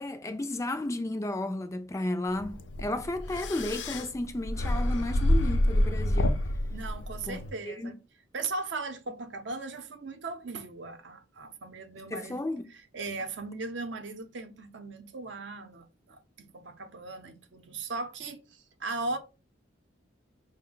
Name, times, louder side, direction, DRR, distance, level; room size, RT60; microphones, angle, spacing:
voice 1, 0.0-6.4 7.3-7.4 7.7-7.9 12.1-12.7, left 1 dB, 15° left, 0.3 m, -33 dB
sound 1, 2.3-7.5, left 1 dB, 70° left, 0.5 m, -28 dB
voice 2, 6.7-8.0 8.3-19.2, right 3 dB, 65° right, 0.6 m, -38 dB
5.0 x 2.1 x 3.8 m
head